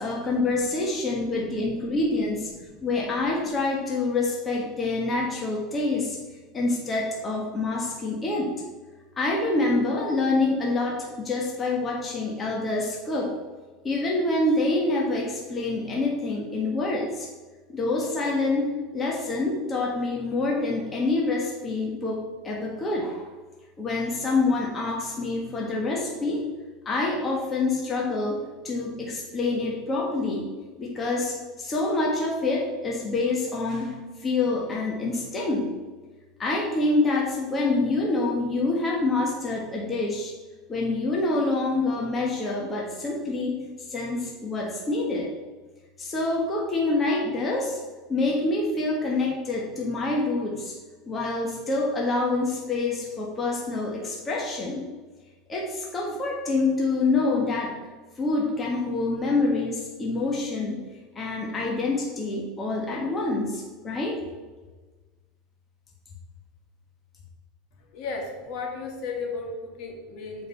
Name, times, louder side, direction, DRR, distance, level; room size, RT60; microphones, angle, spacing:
voice 1, 0.0-6.2 6.5-8.5 9.2-13.3 13.8-17.3 17.7-23.3 23.8-26.4 26.8-30.5 30.8-35.7 36.4-40.3 40.7-43.6 43.9-45.3 46.0-47.8 48.1-50.7 51.1-54.9 55.5-57.8 58.2-60.8 61.1-64.2, left 2 dB, 20° left, -2 dB, 1.5 m, -26 dB
voice 2, 67.9-70.5, left 4 dB, 55° left, 1 dB, 2.0 m, -34 dB
7.6 x 5.1 x 5.6 m, 1.3 s
supercardioid pair, 130°, 0 cm